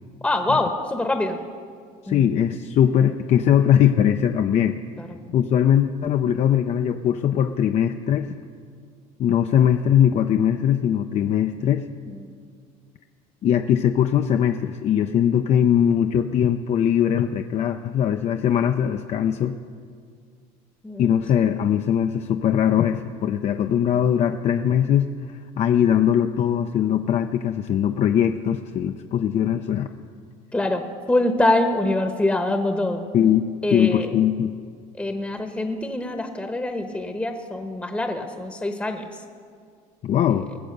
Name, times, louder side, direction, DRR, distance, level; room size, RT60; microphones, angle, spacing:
voice 1, 0.2-1.4 2.1-2.3 5.0-5.1 12.1-12.3 20.8-21.1 30.5-33.0 33.6-34.1 35.0-39.1, left 2 dB, 10° left, 5 dB, 1.0 m, -24 dB
voice 2, 2.0-4.8 5.3-8.4 9.2-11.9 13.4-19.5 21.0-29.9 33.1-34.6 40.0-40.5, left 9 dB, 45° left, 7 dB, 0.5 m, -21 dB
20.0 x 7.6 x 6.7 m, 2.1 s
supercardioid pair, 110°, 16 cm